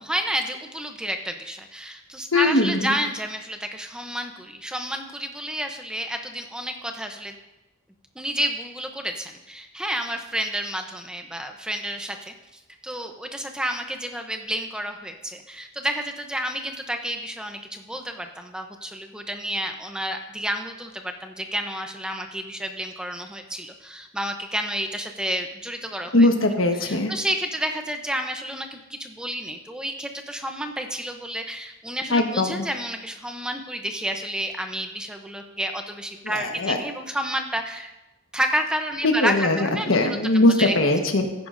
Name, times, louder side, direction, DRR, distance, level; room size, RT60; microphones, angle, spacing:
voice 1, 0.0-7.3 8.2-26.3 26.7-37.9 38.3-40.2 40.5-40.8, equal, 5° right, 5 dB, 0.6 m, -30 dB
voice 2, 2.3-3.0 26.1-27.1 32.1-32.6 36.3-36.8 39.0-39.6 39.9-41.5, left 2 dB, 85° left, 4 dB, 1.3 m, -20 dB
14.5 x 10.5 x 2.6 m, 1.0 s
head